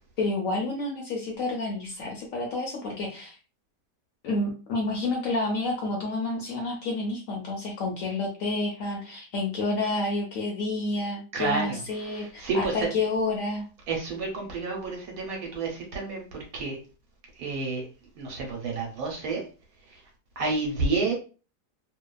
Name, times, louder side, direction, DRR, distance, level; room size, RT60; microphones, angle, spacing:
voice 1, 0.2-3.4 4.2-13.6, left 2 dB, 65° left, 0 dB, 0.8 m, -29 dB
voice 2, 11.3-12.9 13.9-16.8 17.4-17.9 18.1-19.4 19.9-20.0 20.4-21.1, right 3 dB, 65° right, 0 dB, 1.1 m, -30 dB
2.7 x 2.2 x 2.2 m, 0.35 s
omnidirectional pair, 1.8 m